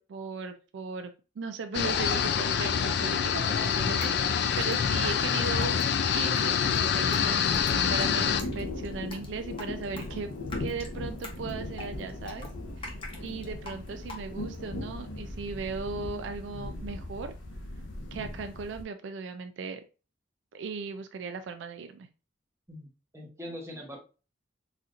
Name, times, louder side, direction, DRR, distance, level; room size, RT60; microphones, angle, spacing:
voice 1, 0.0-10.3 10.6-12.5 12.8-17.3 18.1-19.8 20.5-22.1, right 4 dB, 65° right, 8 dB, 0.3 m, -37 dB
sound 1, 1.7-8.4, left 7 dB, 60° left, 0.3 m, -26 dB
Drip, 3.6-14.6, left 2 dB, 30° left, 0.7 m, -45 dB
sound 2, 7.4-18.8, left 1 dB, 75° left, 0.7 m, -39 dB
voice 2, 22.7-24.0, equal, 15° right, 0 dB, 0.9 m, -42 dB
4.2 x 2.4 x 2.5 m, 0.33 s
head